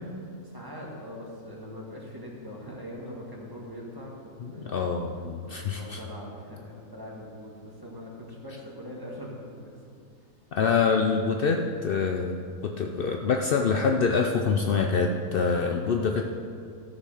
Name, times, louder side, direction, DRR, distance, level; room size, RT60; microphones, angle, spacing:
voice 1, 0.4-4.8 5.5-9.7 15.3-16.1, left 1 dB, 15° right, -3 dB, 1.6 m, -42 dB
voice 2, 4.4-6.0 10.5-16.2, left 5 dB, 80° left, 3 dB, 0.5 m, -26 dB
13.0 x 6.6 x 4.9 m, 2.3 s
omnidirectional pair, 1.6 m